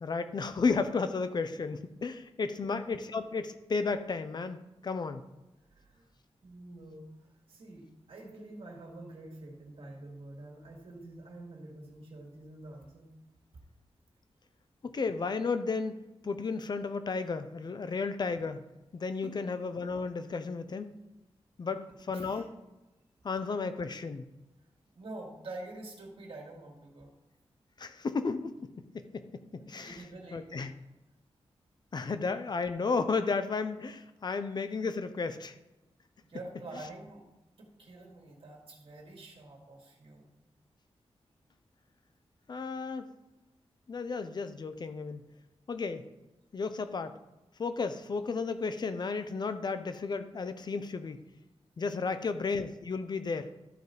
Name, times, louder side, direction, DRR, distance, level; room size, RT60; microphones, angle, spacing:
voice 1, 0.0-4.6 4.8-5.2 14.8-16.0 16.2-18.6 18.9-20.9 21.6-21.8 22.1-22.5 23.2-24.2 27.8-29.2 29.5-30.0 30.3-30.7 31.9-35.6 42.5-43.1 43.9-45.2 45.7-46.1 46.5-47.2 47.6-51.2 51.8-53.5, left 4 dB, 40° left, 10 dB, 0.6 m, -33 dB
voice 2, 5.7-6.1 6.4-13.1 19.2-19.3 21.7-21.8 22.1-22.5 25.0-27.1 29.8-30.7 36.2-37.2 37.6-40.3 51.9-52.4, right 2 dB, 60° right, 0 dB, 2.1 m, -47 dB
12.5 x 5.1 x 4.1 m, 1.0 s
wide cardioid pair, 160°, 11 cm